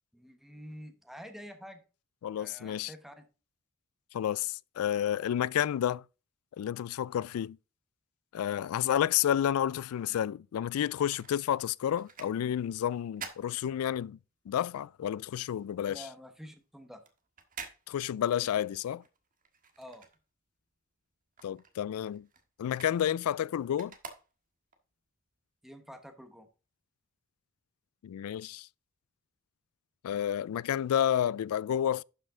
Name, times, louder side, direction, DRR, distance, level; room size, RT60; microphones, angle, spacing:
voice 1, 0.1-1.8 2.4-3.2 15.9-17.0 19.8-20.0 25.6-26.5, equal, ahead, 1.1 m, -48 dB
voice 2, 2.2-2.9 4.1-6.0 6.6-7.6 8.3-14.2 14.5-16.0 17.9-19.0 21.4-22.3 22.6-23.9 28.0-28.7 30.0-32.0, left 10 dB, 85° left, 0.3 m, -30 dB
sound 1, 10.8-14.4 14.7-20.7 21.0-24.8 25.3-25.4, right 5 dB, 40° right, 1.5 m, -50 dB
12.0 x 5.4 x 3.7 m
head